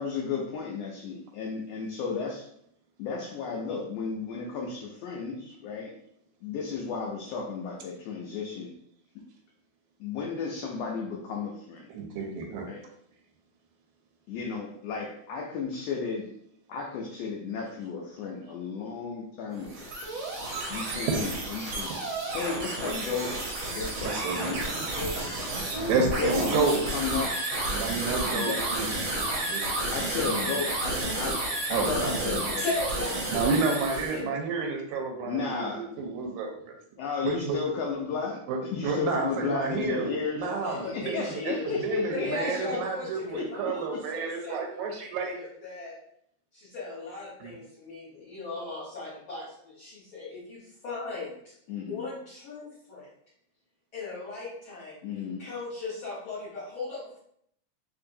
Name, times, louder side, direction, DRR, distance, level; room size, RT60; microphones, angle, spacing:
voice 1, 0.0-2.5 3.0-5.9 6.4-8.7 10.0-11.9 12.7-12.8 14.3-16.3 16.7-19.9 20.7-21.9 22.3-25.2 26.2-26.7 26.9-27.3 28.3-28.6 29.9-31.4 31.7-32.6 35.3-35.8 37.0-40.4 40.9-42.8 43.3-43.4 51.7-52.0 55.0-55.4, left 5 dB, 85° left, -1 dB, 1.4 m, -33 dB
voice 2, 11.9-12.7 24.0-24.9 25.9-26.8 27.7-28.9 29.4-29.6 30.0-30.6 31.7-32.5 33.3-36.8 37.2-37.6 38.5-45.4 47.4-47.5, right 4 dB, 85° right, 2 dB, 2.0 m, -31 dB
sound 1, 19.5-34.2, right 2 dB, 70° right, 1.2 m, -31 dB
voice 3, 32.6-33.5 34.1-34.3 40.4-41.7 42.1-44.6 44.9-46.0 46.5-51.6 51.8-53.1 53.9-55.0 55.4-57.2, left 3 dB, 55° left, -9 dB, 1.5 m, -37 dB
4.5 x 2.8 x 2.6 m, 0.70 s
omnidirectional pair, 3.4 m